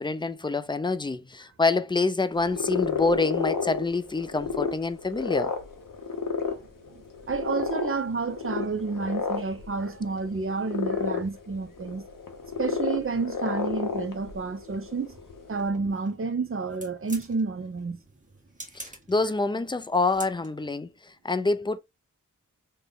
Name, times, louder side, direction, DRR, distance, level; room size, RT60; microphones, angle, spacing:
voice 1, 0.0-5.5 18.7-21.8, left 3 dB, 15° left, 0.3 m, -26 dB
sound 1, 2.3-15.7, left 5 dB, 90° left, 0.8 m, -32 dB
voice 2, 6.9-12.0 12.6-15.2 15.5-18.0, right 4 dB, 40° right, 0.6 m, -30 dB
sound 2, 15.4-20.7, right 1 dB, 25° right, 1.1 m, -47 dB
3.4 x 2.2 x 3.8 m
wide cardioid pair, 60°, 32 cm